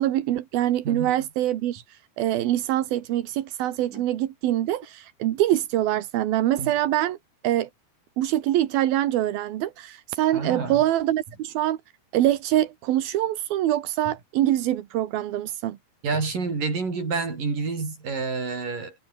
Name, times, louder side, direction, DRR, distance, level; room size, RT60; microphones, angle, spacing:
voice 1, 0.0-7.2 7.4-7.7 8.2-11.8 12.1-15.8, right 13 dB, 85° right, 3.3 m, -24 dB
voice 2, 0.8-1.3 3.9-4.0 6.6-6.7 10.3-10.8 16.0-19.0, right 4 dB, 65° right, 8.3 m, -29 dB
omnidirectional pair, 4.2 m